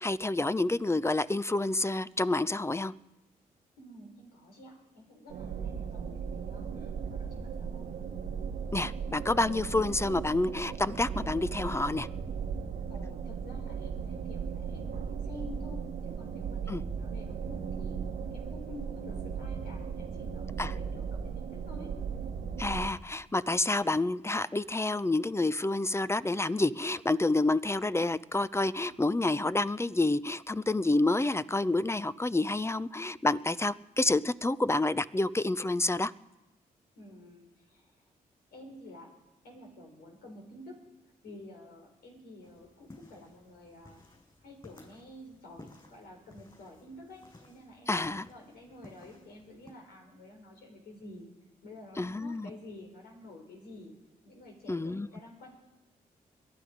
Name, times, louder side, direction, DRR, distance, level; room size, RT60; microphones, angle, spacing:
voice 1, 0.0-2.9 8.7-12.1 16.7-16.8 20.6-20.7 22.6-36.1 47.9-48.3 52.0-52.5 54.7-55.1, left 2 dB, 15° left, 16 dB, 0.6 m, -28 dB
voice 2, 3.8-7.9 12.9-21.9 37.0-37.9 38.5-39.1 39.4-40.8 41.2-44.0 44.4-51.3 51.6-53.9 54.2-55.6, left 1 dB, 80° left, 1 dB, 4.1 m, -50 dB
sound 1, 5.3-22.9, right 6 dB, 85° right, 1.4 m, -37 dB
sound 2, 42.4-49.7, left 2 dB, 30° left, 7.7 m, -56 dB
22.0 x 11.5 x 5.1 m, 1.0 s
supercardioid pair, 50°, 16 cm